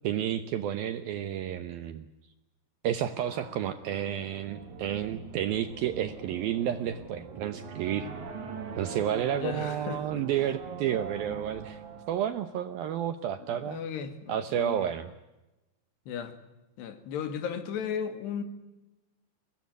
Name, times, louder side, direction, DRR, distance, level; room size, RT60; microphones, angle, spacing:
voice 1, 0.0-2.1 2.8-8.1 8.8-11.8 12.1-13.8 14.3-15.1, right 10 dB, 75° right, 11 dB, 2.3 m, -31 dB
sound 1, 3.2-13.3, right 5 dB, 50° right, 3.1 m, -43 dB
voice 2, 9.3-10.2 13.6-14.9 16.1-16.3 16.8-18.4, left 7 dB, 70° left, 10 dB, 4.0 m, -35 dB
24.5 x 19.5 x 9.5 m, 1.0 s
omnidirectional pair, 5.2 m